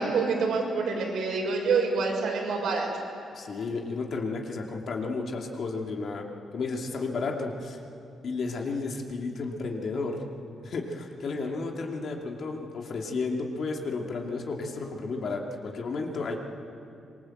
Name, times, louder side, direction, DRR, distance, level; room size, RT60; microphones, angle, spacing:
voice 1, 0.0-2.9, right 4 dB, 80° right, 0 dB, 6.2 m, -27 dB
voice 2, 3.3-6.3 6.5-7.8 8.2-10.2 10.6-16.4, left 3 dB, 50° left, 1 dB, 2.7 m, -32 dB
25.5 x 23.5 x 7.9 m, 2.5 s
wide cardioid pair, 160°, 0 cm